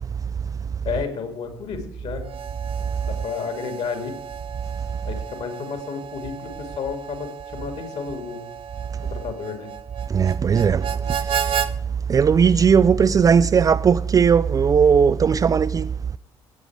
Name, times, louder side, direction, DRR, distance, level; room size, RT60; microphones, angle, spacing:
voice 1, 0.8-2.3 3.1-4.2 5.0-8.5 9.0-9.7, left 6 dB, 50° left, 2.4 m, -31 dB
Harmonica, 2.2-11.7, right 8 dB, 45° right, 0.8 m, -33 dB
voice 2, 10.1-10.9 12.1-15.9, right 6 dB, 25° right, 0.4 m, -17 dB
17.5 x 8.0 x 4.8 m
figure-of-eight pair, 50°, 14 cm